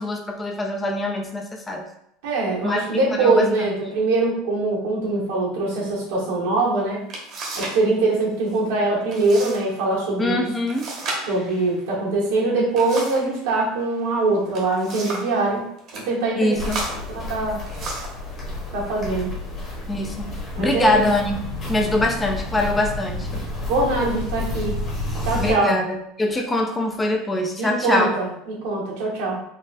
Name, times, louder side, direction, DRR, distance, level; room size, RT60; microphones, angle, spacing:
voice 1, 0.0-1.8 2.6-3.4 10.2-10.9 16.4-16.8 19.9-21.4 21.7-23.3 25.4-28.1, left 1 dB, 10° left, 3 dB, 0.4 m, -23 dB
voice 2, 2.2-7.1 7.5-10.5 11.3-15.6 15.9-16.8 17.1-17.6 18.7-19.3 20.5-21.0 23.7-24.8 25.2-25.8 27.6-29.4, right 2 dB, 85° right, -4 dB, 1.4 m, -23 dB
sound 1, 6.6-6.7 7.1-7.8 8.1-8.6 9.1-9.6 9.9-10.0 10.7-13.3 14.3-15.4 15.8-16.1 16.6-18.2 19.0-19.2 19.7-20.2, right 2 dB, 40° right, 0.9 m, -33 dB
Walk footsteps, 16.5-25.5, left 2 dB, 30° left, 1.1 m, -30 dB
4.0 x 2.4 x 2.6 m, 0.72 s
cardioid pair, 150°, 0 cm